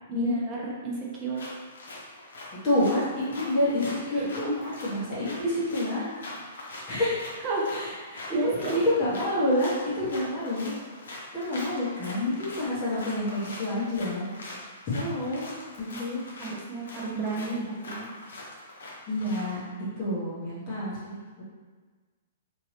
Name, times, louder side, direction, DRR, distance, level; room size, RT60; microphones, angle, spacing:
voice 1, 0.1-1.5 4.1-4.5 7.4-7.8 8.1-8.9 15.9-18.1, right 3 dB, 20° right, -3 dB, 0.6 m, -32 dB
sound 1, 1.3-19.7, left 2 dB, 85° left, 0.8 m, -43 dB
voice 2, 2.6-6.0 6.9-7.3 7.7-10.8 11.3-14.2 14.9-15.5 16.0-16.2 19.1-19.6 20.0-21.4, left 1 dB, 30° left, -10 dB, 1.3 m, -28 dB
2.9 x 2.6 x 3.2 m, 1.4 s
hypercardioid pair, 160°, 0 cm